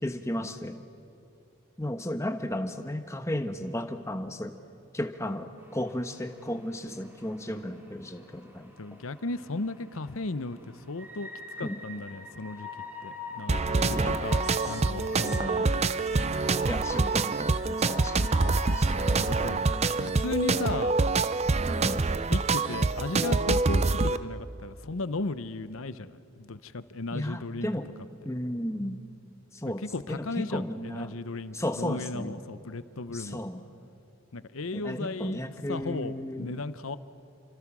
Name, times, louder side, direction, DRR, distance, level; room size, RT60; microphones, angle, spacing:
voice 1, 0.0-0.8 1.8-4.5 4.9-9.0 11.6-11.8 14.0-14.3 14.7-14.8 15.2-15.7 16.7-18.9 21.7-22.0 27.1-27.9 28.2-29.0 29.5-31.1 31.5-32.4 33.1-33.6 34.7-36.5, left 1 dB, 15° left, 7 dB, 1.1 m, -34 dB
sound 1, 5.6-21.5, left 1 dB, 10° right, 2.6 m, -44 dB
voice 2, 8.8-11.3 11.6-12.7 13.0-14.4 14.7-15.8 19.0-19.6 20.0-21.0 22.3-27.7 29.6-33.4 34.3-35.4 35.7-37.0, left 3 dB, 70° left, 13 dB, 0.8 m, -35 dB
sound 2, 13.5-24.2, right 3 dB, 30° right, 0.5 m, -26 dB
28.5 x 25.0 x 6.2 m, 2.6 s
head